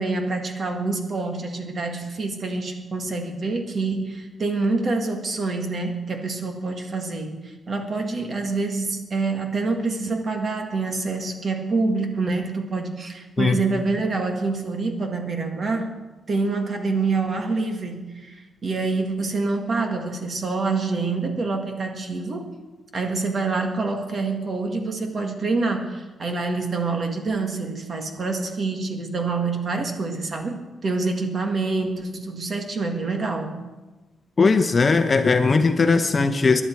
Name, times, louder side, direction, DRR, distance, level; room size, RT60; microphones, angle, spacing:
voice 1, 0.0-15.9 16.3-22.5 22.9-33.5, right 3 dB, 40° right, 4 dB, 1.9 m, -26 dB
voice 2, 34.4-36.6, left 4 dB, 30° left, 8 dB, 0.9 m, -18 dB
21.0 x 11.0 x 4.6 m, 1.2 s
wide cardioid pair, 140°, 0 cm